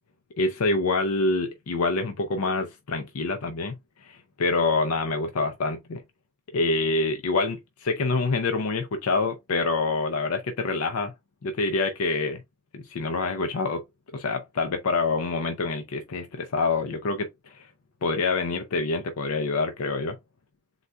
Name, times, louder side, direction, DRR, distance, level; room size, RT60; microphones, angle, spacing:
voice 1, 0.4-3.8 4.0-6.0 6.5-11.1 11.4-12.4 12.7-13.8 14.1-17.7 18.0-20.2, left 3 dB, 80° left, 0.5 m, -26 dB
3.9 x 2.2 x 4.5 m
head